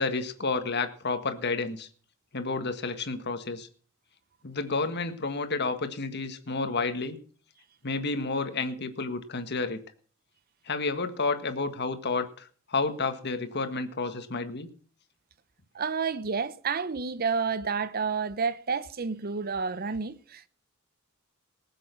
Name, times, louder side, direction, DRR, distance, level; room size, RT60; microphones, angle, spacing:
voice 1, 0.0-1.9 2.3-3.7 4.4-7.2 7.8-9.8 10.7-14.7, left 3 dB, 55° left, 1.6 m, -30 dB
voice 2, 15.7-20.5, right 5 dB, 45° right, 0.8 m, -30 dB
19.0 x 7.6 x 5.9 m
head